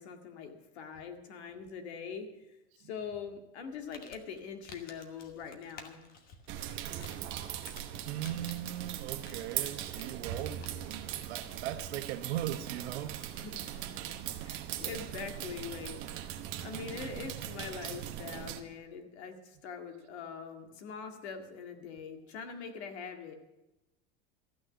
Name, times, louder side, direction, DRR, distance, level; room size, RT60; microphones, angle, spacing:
voice 1, 0.0-6.0 13.3-13.9 14.4-23.3, left 6 dB, 85° left, 2.1 m, -43 dB
Crumpling crinkling, 3.6-11.0, left 4 dB, 30° left, 1.2 m, -55 dB
sound 1, 6.5-18.6, right 11 dB, 40° right, 1.0 m, -40 dB
voice 2, 8.1-13.3, right 12 dB, 80° right, 1.1 m, -39 dB
14.0 x 6.4 x 9.8 m
supercardioid pair, 170°, 32 cm